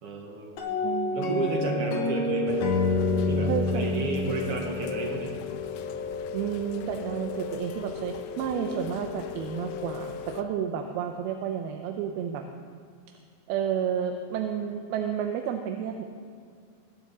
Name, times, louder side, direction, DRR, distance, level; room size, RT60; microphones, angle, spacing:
voice 1, 0.0-2.6 3.3-5.3, right 3 dB, 55° right, 1 dB, 1.8 m, -32 dB
sound 1, 0.6-5.7, left 3 dB, 60° left, 2.3 m, -28 dB
voice 2, 0.8-1.4 3.4-4.4 6.3-12.4 13.5-16.0, right 8 dB, 85° right, 5 dB, 2.6 m, -31 dB
Rain, 2.5-10.4, left 7 dB, 85° left, 2.5 m, -36 dB
22.0 x 9.6 x 4.1 m, 2.2 s
omnidirectional pair, 4.3 m